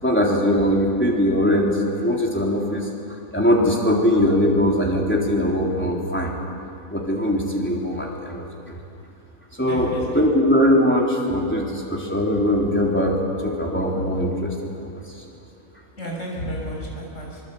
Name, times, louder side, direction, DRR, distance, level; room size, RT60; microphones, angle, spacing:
voice 1, 0.0-1.7 2.0-2.9 3.3-6.3 6.9-8.8 9.6-13.2 13.4-14.9, equal, 10° left, -2 dB, 3.7 m, -21 dB
voice 2, 9.6-10.3 16.0-17.4, equal, 60° left, -2 dB, 6.5 m, -32 dB
25.0 x 21.0 x 8.5 m, 2.6 s
omnidirectional pair, 1.5 m